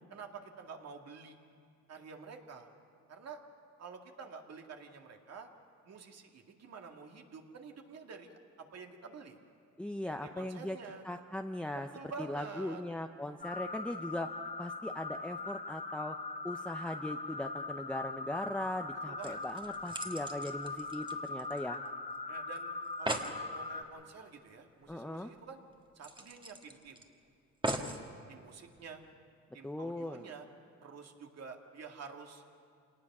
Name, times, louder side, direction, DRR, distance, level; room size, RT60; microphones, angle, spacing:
voice 1, 0.1-1.4 1.9-2.7 3.1-3.4 3.8-5.5 5.9-9.4 10.2-11.1 11.9-12.8 19.1-19.4 22.3-25.6 25.9-27.0 27.7-28.0 28.3-29.0 29.5-30.5 30.8-32.4, right 5 dB, 55° right, 3 dB, 2.2 m, -49 dB
voice 2, 9.8-10.8 11.0-11.9 12.2-16.2 16.4-21.8 24.9-25.3 29.6-30.2, left 1 dB, 5° left, 5 dB, 0.7 m, -39 dB
sound 1, 13.4-23.8, left 3 dB, 25° left, 1.4 m, -41 dB
sound 2, 18.9-19.0 19.2-21.9 22.1-22.2 22.6-22.7 22.8-23.4 24.9-25.0 25.3-25.4 26.0-27.0 27.6-28.0 28.8-28.9, right 1 dB, 15° right, 1.7 m, -39 dB
26.5 x 19.0 x 6.1 m, 2.3 s
cardioid pair, 90°, 30 cm